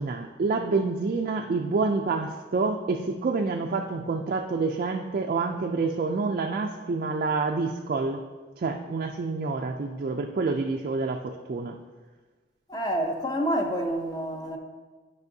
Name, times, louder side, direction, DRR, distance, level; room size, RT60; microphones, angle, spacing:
voice 1, 0.0-8.2 8.6-11.8, right 4 dB, 45° right, 2 dB, 0.4 m, -28 dB
voice 2, 12.7-14.6, equal, 20° left, 3 dB, 0.7 m, -28 dB
10.5 x 5.3 x 2.7 m, 1.4 s
head